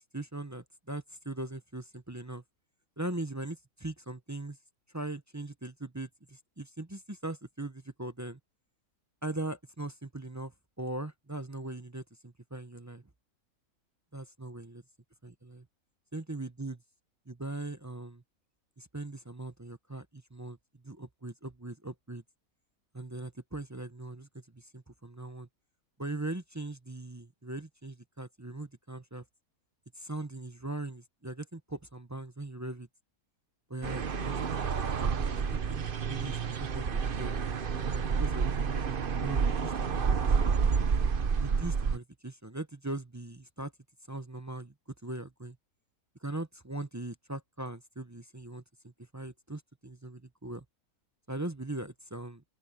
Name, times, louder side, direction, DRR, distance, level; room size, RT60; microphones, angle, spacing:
voice 1, 0.1-2.4 3.0-4.6 4.9-8.4 9.2-10.5 10.8-13.0 14.1-14.8 15.2-15.6 16.1-16.8 17.3-18.2 18.8-20.6 20.8-22.2 22.9-24.3 24.5-25.5 26.0-29.2 29.9-32.9 33.7-34.4 34.7-35.1 35.7-37.4 37.9-38.5 38.7-40.6 41.4-43.7 44.1-44.7 45.0-45.6 46.2-50.6 51.3-52.4, right 2 dB, 15° right, 0.6 m, -40 dB
sound 1, 33.8-42.0, right 6 dB, 40° right, 0.9 m, -29 dB
open air
omnidirectional pair, 1.6 m